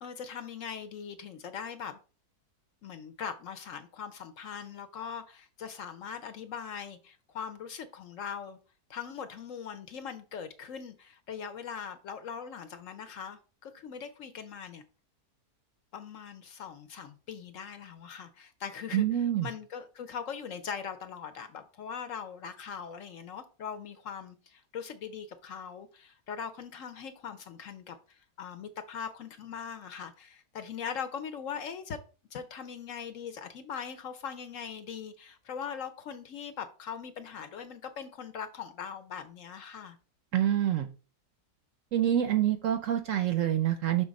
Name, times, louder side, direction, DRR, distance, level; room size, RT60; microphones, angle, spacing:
voice 1, 0.0-2.0 2.8-8.6 8.9-14.8 15.9-32.0 32.3-40.0, left 7 dB, 60° left, 0.9 m, -41 dB
voice 2, 18.9-19.5 40.3-40.9 41.9-44.0, right 11 dB, 70° right, 0.8 m, -26 dB
6.1 x 3.6 x 5.1 m
omnidirectional pair, 1.7 m